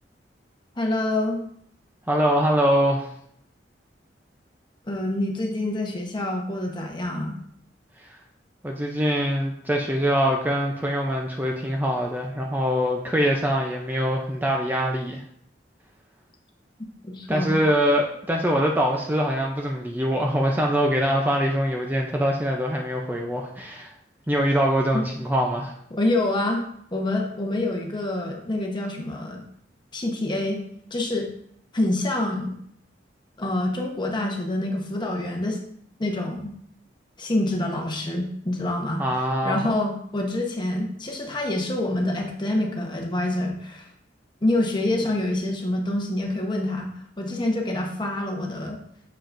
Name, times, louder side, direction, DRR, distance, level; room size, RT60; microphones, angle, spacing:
voice 1, 0.8-1.4 4.9-7.4 17.0-17.6 24.9-25.1 25.9-26.6 26.9-29.4 29.9-30.6 30.9-31.3 31.7-32.6 33.4-35.6 36.0-36.5 37.2-39.0 39.4-43.9 44.4-46.9 47.2-48.8, left 1 dB, 25° left, 1 dB, 1.0 m, -26 dB
voice 2, 2.1-3.1 8.0-8.2 8.6-15.2 17.3-23.9 24.3-25.7 39.0-39.7, equal, 10° right, 0 dB, 0.5 m, -23 dB
7.0 x 5.6 x 2.5 m, 0.68 s
head